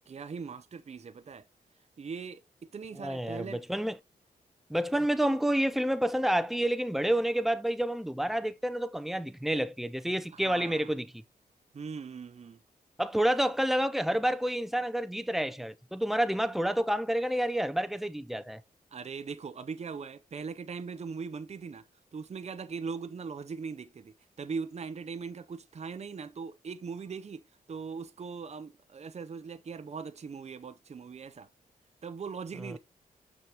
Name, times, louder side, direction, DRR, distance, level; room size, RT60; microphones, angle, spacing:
voice 1, 0.1-1.4 2.0-3.6 10.3-10.9 11.7-12.6 18.9-21.8 22.1-31.5 32.0-32.8, right 5 dB, 45° right, 0.6 m, -40 dB
voice 2, 3.0-4.0 4.7-11.1 13.0-18.6 32.6-32.8, right 1 dB, ahead, 0.6 m, -29 dB
6.2 x 6.0 x 2.9 m
cardioid pair, 65°, 16 cm